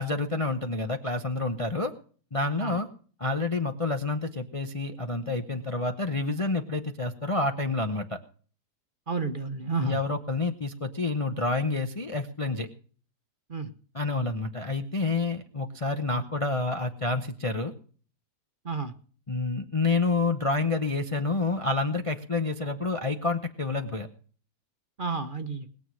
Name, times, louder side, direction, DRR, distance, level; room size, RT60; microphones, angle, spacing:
voice 1, 0.0-1.9 2.3-2.9 3.2-8.2 9.8-12.7 13.9-17.7 19.3-24.1, left 3 dB, 30° left, 6 dB, 0.7 m, -28 dB
voice 2, 9.1-10.0 13.5-13.7 16.2-16.3 18.6-18.9 25.0-25.7, right 4 dB, 35° right, 9 dB, 1.0 m, -31 dB
21.0 x 7.5 x 6.3 m, 0.43 s
omnidirectional pair, 1.7 m